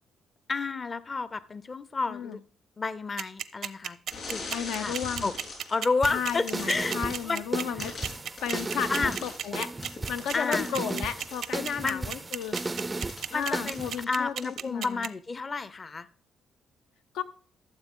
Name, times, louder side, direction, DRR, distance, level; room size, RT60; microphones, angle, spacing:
voice 1, 0.5-2.4 2.8-4.0 4.3-4.5 4.7-4.9 5.2-5.3 5.7-6.9 7.2-7.4 7.8-7.9 8.9-9.2 10.3-10.7 11.8-12.1 13.3-16.1, left 4 dB, 35° left, 0.5 m, -30 dB
sound 1, 3.2-15.1, right 9 dB, 70° right, 0.5 m, -33 dB
sound 2, 4.1-5.8 6.3-7.3 7.8-11.9 12.4-14.1 14.4-14.7, left 3 dB, 60° left, 4.2 m, -42 dB
voice 2, 4.5-5.3 6.1-7.9 8.4-12.6 13.3-15.1 17.1-17.2, left 8 dB, 85° left, 0.6 m, -34 dB
sound 3, 6.0-14.1, right 2 dB, 20° right, 0.3 m, -35 dB
13.0 x 7.2 x 3.7 m
cardioid pair, 90°, 0 cm